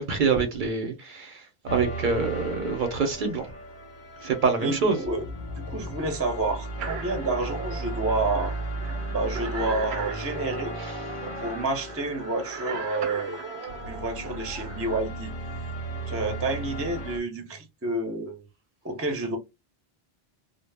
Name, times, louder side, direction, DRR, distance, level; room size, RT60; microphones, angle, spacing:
voice 1, 0.0-1.4 1.7-3.4 4.2-5.0, right 4 dB, 60° right, 0.7 m, -25 dB
sound 1, 1.7-17.2, right 1 dB, 55° left, 0.7 m, -36 dB
voice 2, 4.6-5.2 5.5-8.5 9.1-10.8 11.2-13.4 13.9-15.3 16.1-18.5 18.8-19.4, right 2 dB, 20° right, 0.4 m, -29 dB
sound 2, 6.8-15.0, right 6 dB, 90° right, 0.8 m, -39 dB
2.0 x 2.0 x 3.2 m
omnidirectional pair, 1.0 m